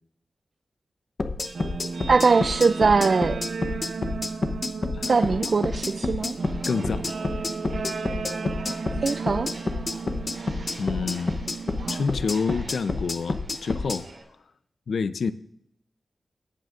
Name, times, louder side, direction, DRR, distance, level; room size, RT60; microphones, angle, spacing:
sound 1, 1.2-14.0, left 3 dB, 45° left, 0.8 m, -29 dB
Guitar, 1.4-12.1, right 5 dB, 85° right, 0.7 m, -34 dB
voice 1, 2.1-3.4 5.1-6.4 9.0-9.5, right 4 dB, 55° right, 11 dB, 0.3 m, -21 dB
Walk footsteps, 5.2-14.2, right 2 dB, 70° right, 5.1 m, -45 dB
voice 2, 6.7-7.3 10.8-11.4 11.9-14.1 14.9-15.3, left 5 dB, 85° left, 13 dB, 0.5 m, -28 dB
18.5 x 9.1 x 2.5 m, 0.71 s
wide cardioid pair, 135°, 0 cm